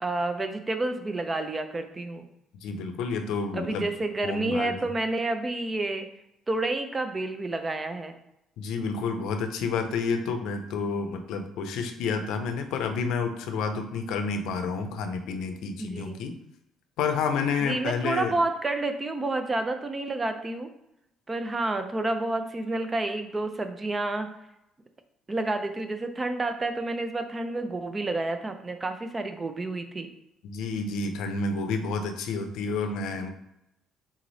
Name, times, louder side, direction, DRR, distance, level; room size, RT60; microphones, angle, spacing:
voice 1, 0.0-2.3 3.5-6.1 6.5-8.2 15.8-16.2 17.6-20.7 21.3-24.3 25.3-30.1, right 2 dB, 20° right, 8 dB, 0.5 m, -29 dB
voice 2, 2.6-3.9 4.2-4.9 8.6-16.3 17.0-18.3 30.4-33.3, left 4 dB, 80° left, 7 dB, 0.5 m, -30 dB
3.8 x 3.1 x 4.0 m, 0.85 s
cardioid pair, 110°, 0 cm